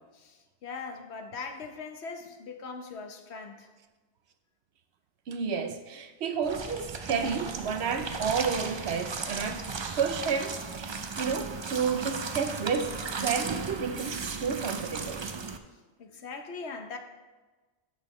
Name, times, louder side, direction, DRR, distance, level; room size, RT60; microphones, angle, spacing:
voice 1, 0.1-3.7 16.0-17.0, left 4 dB, 70° left, 1.1 m, -40 dB
voice 2, 5.3-9.7 10.0-15.3, right 6 dB, 70° right, 0.9 m, -31 dB
sound 1, 6.4-15.6, right 4 dB, 45° right, 0.3 m, -36 dB
13.0 x 5.7 x 3.1 m
omnidirectional pair, 1.2 m